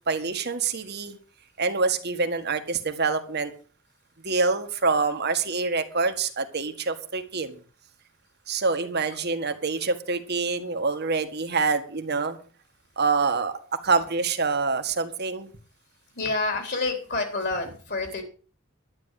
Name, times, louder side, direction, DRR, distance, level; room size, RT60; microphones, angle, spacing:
voice 1, 0.1-1.2 1.6-3.5 4.2-7.6 8.5-12.4 13.0-15.5, right 4 dB, 55° right, 8 dB, 1.8 m, -26 dB
voice 2, 16.1-18.2, left 3 dB, 55° left, 5 dB, 3.8 m, -28 dB
12.0 x 9.7 x 6.7 m, 0.38 s
head